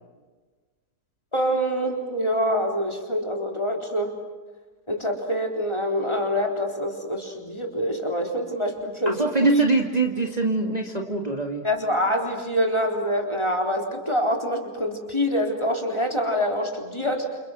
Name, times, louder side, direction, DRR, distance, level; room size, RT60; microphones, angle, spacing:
voice 1, 1.3-4.1 4.9-9.2 9.4-9.7 11.6-17.3, equal, 20° left, 2 dB, 3.9 m, -25 dB
voice 2, 9.1-11.6, right 3 dB, 25° right, 1 dB, 2.2 m, -24 dB
29.0 x 29.0 x 6.2 m, 1.3 s
omnidirectional pair, 1.6 m